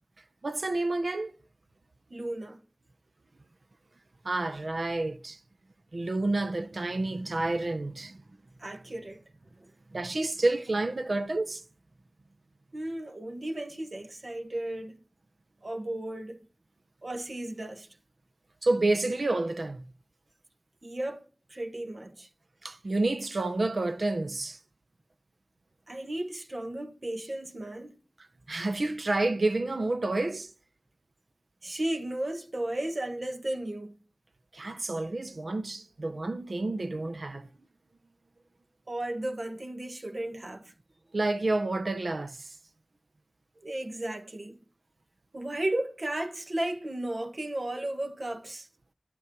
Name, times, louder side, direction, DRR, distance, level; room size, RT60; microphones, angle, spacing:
voice 1, 0.4-1.3 4.2-5.4 5.9-8.2 9.9-11.6 18.6-19.8 22.6-24.6 28.5-30.5 34.5-37.5 41.1-42.5, right 2 dB, 85° right, 0.7 m, -29 dB
voice 2, 2.1-2.6 8.6-9.2 9.6-9.7 12.7-15.0 15.6-16.4 17.0-17.9 20.8-21.2 21.5-22.3 25.9-27.9 31.6-34.0 38.9-40.7 43.6-44.6 45.3-48.7, right 1 dB, 65° right, 1.5 m, -34 dB
11.0 x 8.6 x 4.6 m
wide cardioid pair, 50°, 0 cm